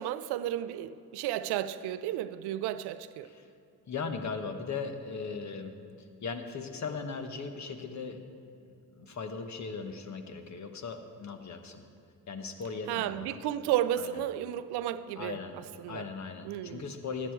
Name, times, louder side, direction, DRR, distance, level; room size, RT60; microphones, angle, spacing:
voice 1, 0.0-3.3 12.9-16.1 16.4-16.9, right 12 dB, 85° right, 0.5 m, -33 dB
voice 2, 3.9-8.2 8.6-11.8 12.3-13.4 14.0-14.2 15.2-15.6 15.9-17.3, left 5 dB, 45° left, 1.1 m, -38 dB
12.5 x 10.0 x 4.6 m
cardioid pair, 70°, 38 cm